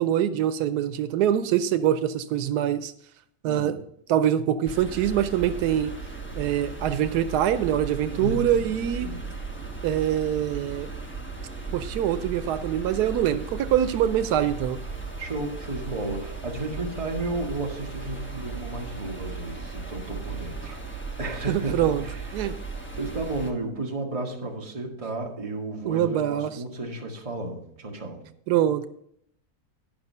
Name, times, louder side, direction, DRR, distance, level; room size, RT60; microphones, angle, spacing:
voice 1, 0.0-2.9 3.4-3.8 4.1-5.9 6.4-9.1 9.8-10.9 11.7-14.8 21.5-22.0 22.3-22.5 25.8-26.5 28.5-28.9, right 10 dB, 85° right, 12 dB, 1.2 m, -24 dB
voice 2, 3.4-3.8 8.1-8.7 9.0-9.2 15.2-20.8 21.2-22.3 23.0-28.2, right 2 dB, 25° right, 0 dB, 1.4 m, -33 dB
sound 1, 4.6-23.5, right 4 dB, 10° left, 1.0 m, -36 dB
10.5 x 6.0 x 5.3 m, 0.69 s
omnidirectional pair, 1.7 m